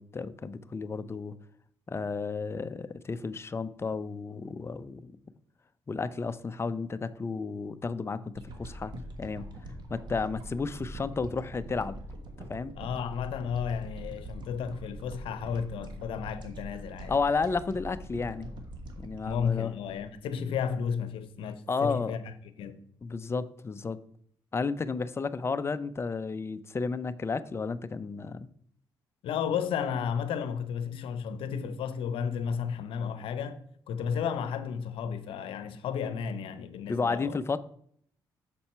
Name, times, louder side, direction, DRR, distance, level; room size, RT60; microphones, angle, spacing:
voice 1, 0.0-1.3 1.9-5.1 5.9-8.9 9.2-9.5 9.9-12.0 12.5-12.7 17.1-18.5 19.0-19.7 21.7-22.1 23.0-24.0 24.5-28.5 36.9-37.6, left 4 dB, 30° left, 0.5 m, -32 dB
sound 1, 8.4-20.7 21.1-21.2, right 1 dB, 55° right, 1.3 m, -43 dB
voice 2, 12.8-17.1 19.2-22.8 29.2-33.6 33.9-37.4, left 7 dB, 80° left, 0.7 m, -33 dB
6.8 x 4.2 x 5.6 m
cardioid pair, 70°, 9 cm